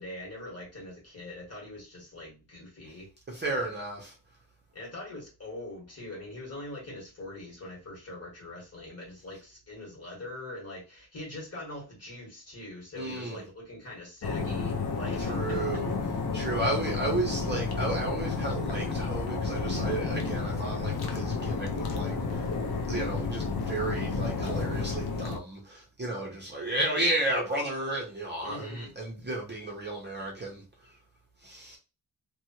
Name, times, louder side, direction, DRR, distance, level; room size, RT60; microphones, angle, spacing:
voice 1, 0.0-3.1 3.5-3.7 4.7-15.8 28.4-28.9, left 1 dB, 35° left, 1.4 m, -43 dB
voice 2, 3.3-4.1 13.0-13.4 15.2-15.9 16.3-22.5 22.9-31.0 31.4-31.8, right 2 dB, 25° right, 0.7 m, -33 dB
sound 1, 14.2-25.4, left 4 dB, 65° left, 0.6 m, -31 dB
2.9 x 2.3 x 2.7 m
wide cardioid pair, 175°, 42 cm